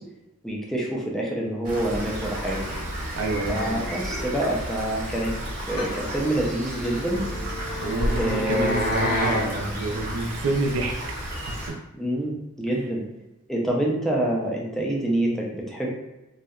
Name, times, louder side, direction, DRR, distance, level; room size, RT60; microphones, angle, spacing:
voice 1, 0.4-2.6 3.5-5.4 5.7-7.2 8.1-9.0 12.0-13.0 13.5-15.9, right 1 dB, ahead, -3 dB, 0.3 m, -26 dB
Rain, 1.6-11.7, equal, 40° right, 0.6 m, -32 dB
sound 1, 2.5-3.3 3.6-5.0 5.3-5.4 5.8-6.9 7.2-7.4 7.8-9.2 9.5-9.6 10.1-10.3 10.6-10.7, left 1 dB, 70° left, 1.0 m, -43 dB
voice 2, 3.2-3.9 7.8-10.9 11.3-11.8, right 2 dB, 75° right, 3 dB, 0.4 m, -28 dB
sound 2, 6.9-9.5, equal, 40° left, 0.6 m, -28 dB
2.7 x 2.1 x 2.3 m, 1.0 s
head